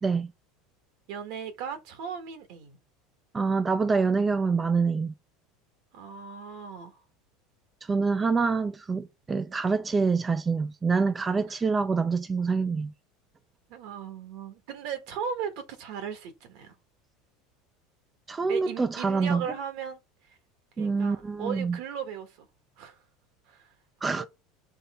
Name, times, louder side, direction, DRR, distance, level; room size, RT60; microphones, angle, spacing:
voice 1, 1.1-2.8 5.9-7.0 11.5-11.6 13.7-16.7 18.5-20.0 20.3-20.4 20.8-22.5 22.8-23.0 23.5-23.7 24.1-24.3, right 7 dB, 65° right, 1.6 m, -37 dB
voice 2, 3.3-5.1 7.8-12.9 18.3-19.4 20.8-21.8 24.0-24.2, right 4 dB, 15° right, 0.4 m, -26 dB
5.3 x 3.3 x 5.5 m
supercardioid pair, 140°, 0 cm